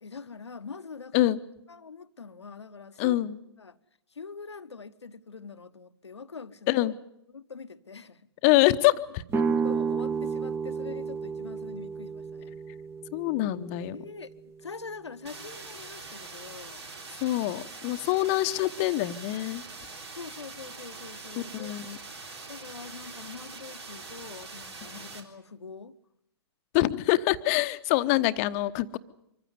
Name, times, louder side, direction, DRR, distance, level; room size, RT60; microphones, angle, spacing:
voice 1, 0.0-1.3 1.7-3.2 3.6-3.8 4.1-6.8 7.3-8.3 9.4-12.6 13.9-14.3 14.6-16.8 18.1-18.3 20.1-21.8 22.5-26.0, left 5 dB, 80° left, 1.1 m, -44 dB
voice 2, 3.0-3.4 6.7-7.0 8.4-9.2 13.1-13.9 17.2-19.6 21.5-22.0 26.7-29.0, left 16 dB, 35° left, 0.9 m, -25 dB
sound 1, 9.3-15.0, right 5 dB, 15° right, 1.1 m, -32 dB
sound 2, 15.2-25.2, right 3 dB, 70° right, 3.8 m, -43 dB
25.0 x 15.0 x 9.6 m
figure-of-eight pair, 115°, 14 cm